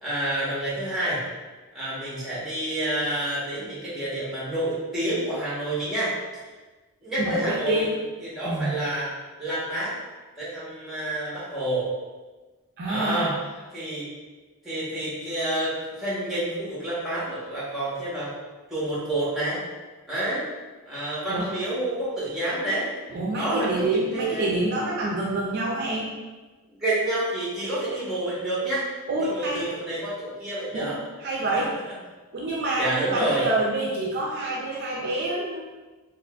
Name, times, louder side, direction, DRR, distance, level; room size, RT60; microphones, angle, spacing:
voice 1, 0.0-1.2 1.7-6.4 7.0-7.9 8.2-9.1 9.4-9.9 10.4-11.9 12.9-13.4 13.7-14.1 14.6-18.3 18.7-19.6 20.1-20.4 20.9-22.9 23.3-24.5 26.7-28.9 29.2-31.0 31.5-31.6 32.8-33.4, right 1 dB, ahead, -9 dB, 1.1 m, -28 dB
voice 2, 7.2-7.9 8.5-8.8 12.8-13.4 21.3-21.5 23.1-26.1 29.1-29.6 30.7-30.9 31.2-31.8 32.3-35.6, right 2 dB, 45° right, -3 dB, 0.4 m, -27 dB
3.6 x 2.8 x 2.3 m, 1.2 s
head